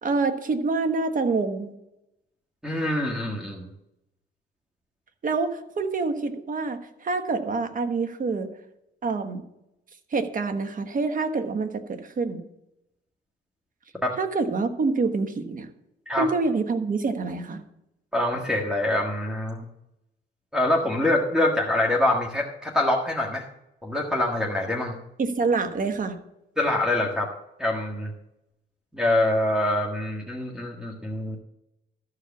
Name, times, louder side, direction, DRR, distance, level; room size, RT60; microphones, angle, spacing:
voice 1, 0.0-1.7 5.2-8.5 9.0-9.4 10.1-12.4 14.2-15.7 16.2-17.6 25.2-26.2, right 4 dB, 45° right, 8 dB, 1.3 m, -26 dB
voice 2, 2.6-3.7 14.0-14.1 16.1-16.3 18.1-19.6 20.5-23.4 23.8-25.0 26.6-27.3 27.6-28.1 28.9-31.4, left 1 dB, 5° right, -1 dB, 1.6 m, -25 dB
13.5 x 4.9 x 7.1 m, 0.86 s
cardioid pair, 90°, 20 cm